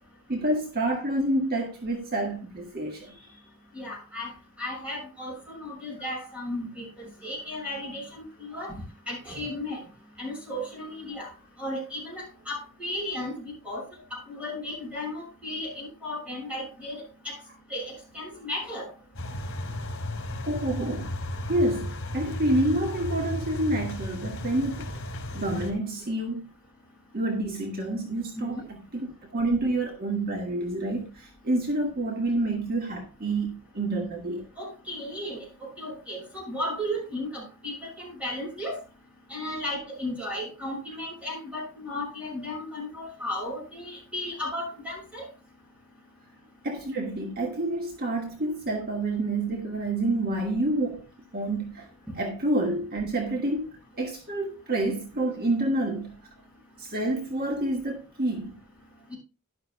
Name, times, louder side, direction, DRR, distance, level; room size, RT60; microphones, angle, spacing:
voice 1, 0.3-3.3 20.5-21.1 21.5-24.9 25.3-26.4 27.1-28.6 28.9-34.5 46.6-51.1 51.3-51.9 52.2-56.2 56.8-58.6, right 1 dB, 45° right, 1.6 m, -28 dB
voice 2, 3.7-4.3 4.6-9.8 10.2-11.3 11.6-13.8 14.1-17.4 17.7-18.9 28.3-28.7 34.6-38.8 39.3-45.3 59.1-59.2, left 1 dB, 5° right, 6.7 m, -35 dB
sound 1, 19.1-25.7, left 1 dB, 65° left, 3.4 m, -34 dB
12.5 x 11.5 x 2.2 m
head